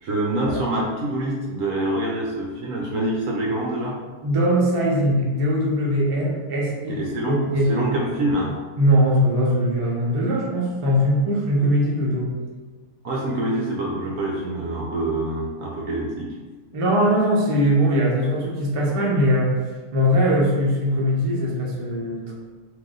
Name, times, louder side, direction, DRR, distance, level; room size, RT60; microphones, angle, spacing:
voice 1, 0.0-4.0 6.9-8.5 13.0-16.3, right 1 dB, 65° right, -2 dB, 0.8 m, -26 dB
voice 2, 4.2-7.9 8.8-12.3 16.7-19.6 19.9-22.3, equal, 40° right, -4 dB, 0.4 m, -21 dB
3.9 x 2.7 x 3.7 m, 1.3 s
omnidirectional pair, 1.8 m